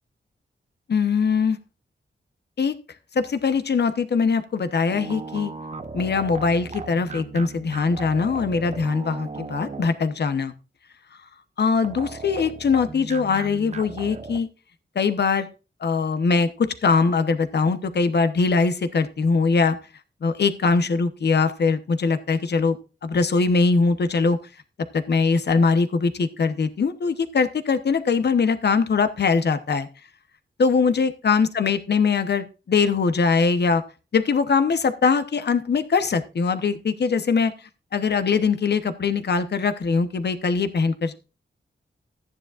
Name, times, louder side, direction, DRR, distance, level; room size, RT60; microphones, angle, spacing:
voice 1, 0.9-1.6 2.6-2.8 3.1-5.5 5.9-10.5 11.6-14.5 14.9-15.5 15.8-19.8 20.2-22.8 23.0-24.4 24.9-29.9 30.6-33.8 34.1-37.5 37.9-41.1, left 4 dB, 55° left, 11 dB, 0.9 m, -22 dB
sound 1, 4.9-10.2 11.8-14.4, right 4 dB, 35° right, 0.8 m, -37 dB
14.5 x 9.8 x 2.4 m, 0.32 s
wide cardioid pair, 150°, 20 cm